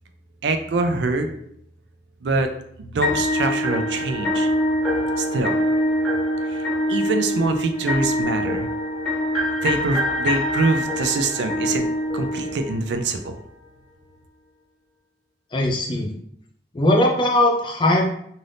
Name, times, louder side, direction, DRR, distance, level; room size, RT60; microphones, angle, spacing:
voice 1, 0.4-1.3 2.2-2.5 2.8-4.5 5.2-5.5 6.5-6.6 6.9-8.7 9.6-11.9 12.1-13.4, right 3 dB, 75° right, 6 dB, 0.4 m, -24 dB
sound 1, 3.0-13.1, left 1 dB, ahead, 0.9 m, -24 dB
voice 2, 15.5-16.1 16.7-18.1, left 1 dB, 25° left, 0 dB, 0.5 m, -19 dB
2.6 x 2.5 x 3.3 m, 0.70 s
head